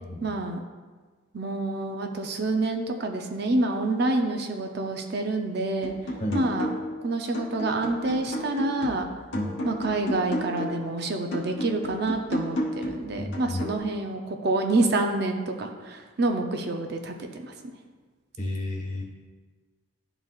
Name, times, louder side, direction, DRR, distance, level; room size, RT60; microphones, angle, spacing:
voice 1, 0.2-0.6 1.3-5.9 6.3-6.7 7.0-9.1 9.6-17.5, right 2 dB, 55° right, 4 dB, 0.5 m, -27 dB
sound 1, 5.8-7.0 7.3-10.9 11.3-13.8, equal, 70° left, 1.2 m, -33 dB
voice 2, 13.2-13.6 18.4-19.0, left 1 dB, 40° left, -1 dB, 1.3 m, -31 dB
11.5 x 4.0 x 2.4 m, 1.4 s
head